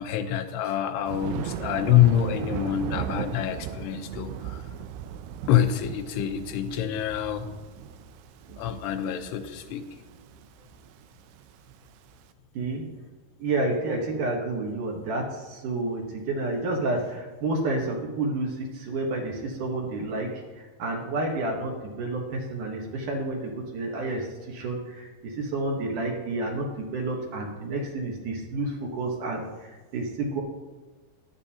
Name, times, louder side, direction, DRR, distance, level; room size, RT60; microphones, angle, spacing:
voice 1, 0.0-4.6 5.5-7.5 8.6-9.9, left 11 dB, 85° left, 6 dB, 2.9 m, -26 dB
Thunder, 1.1-12.2, right 10 dB, 80° right, 2.5 m, -37 dB
voice 2, 12.5-12.8 13.4-30.4, right 2 dB, 60° right, 0 dB, 2.4 m, -30 dB
16.5 x 12.0 x 2.9 m, 1.3 s
omnidirectional pair, 4.7 m